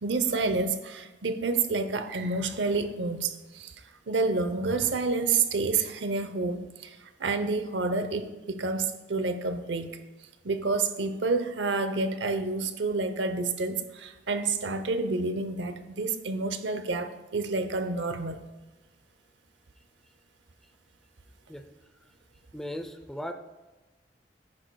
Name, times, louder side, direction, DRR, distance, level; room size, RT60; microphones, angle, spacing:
voice 1, 0.0-3.7 4.1-9.9 10.4-18.5, right 3 dB, 85° right, 10 dB, 0.7 m, -29 dB
voice 2, 22.5-23.3, left 1 dB, 5° left, 7 dB, 0.4 m, -37 dB
10.0 x 9.7 x 2.3 m, 1.2 s
head